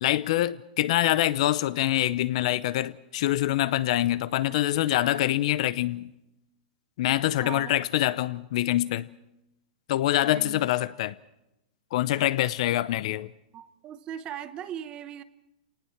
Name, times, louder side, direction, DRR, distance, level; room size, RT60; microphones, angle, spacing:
voice 1, 0.0-6.1 7.0-9.1 9.9-11.1 11.9-13.3, left 14 dB, 50° left, 0.7 m, -25 dB
voice 2, 7.4-7.7 10.2-10.7 13.5-15.2, right 10 dB, 20° right, 0.8 m, -39 dB
26.5 x 19.0 x 5.9 m
hypercardioid pair, 160°, 4 cm